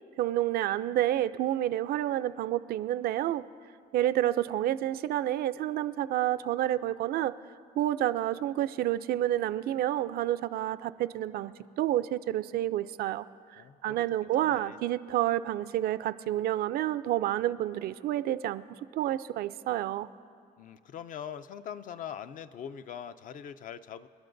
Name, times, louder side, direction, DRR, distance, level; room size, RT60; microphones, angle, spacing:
voice 1, 0.2-3.4 3.9-7.3 7.8-13.3 13.8-18.6 18.9-20.1, right 13 dB, 65° right, 15 dB, 0.4 m, -29 dB
voice 2, 13.6-14.8 20.6-24.1, left 8 dB, 50° left, 12 dB, 0.5 m, -42 dB
28.5 x 11.5 x 2.6 m, 2.3 s
cardioid pair, 110°, 17 cm